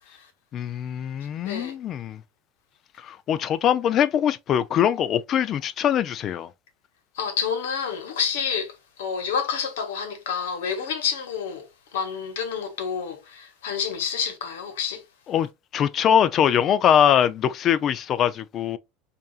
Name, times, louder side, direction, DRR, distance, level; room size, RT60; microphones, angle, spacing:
voice 1, 0.5-2.2 3.0-6.5 15.3-18.8, left 9 dB, 45° left, 0.4 m, -22 dB
voice 2, 1.4-1.8 7.1-11.7 11.9-15.0, left 6 dB, 85° left, 1.2 m, -29 dB
5.2 x 2.6 x 2.4 m
supercardioid pair, 105°, 0 cm